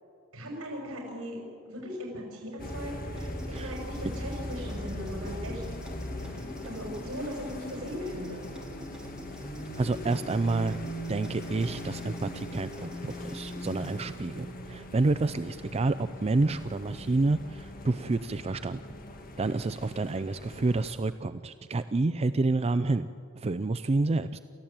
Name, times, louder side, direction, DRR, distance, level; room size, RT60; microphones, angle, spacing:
voice 1, 0.3-5.6 6.6-8.5, equal, 75° right, -1 dB, 6.2 m, -38 dB
sound 1, 2.6-20.9, left 1 dB, 45° left, 2.0 m, -40 dB
sound 2, 3.2-13.9, equal, 5° right, 4.0 m, -49 dB
voice 2, 9.8-18.8 19.4-23.1 23.4-24.4, right 3 dB, 30° right, 12 dB, 0.4 m, -29 dB
28.5 x 14.5 x 8.9 m, 2.6 s
head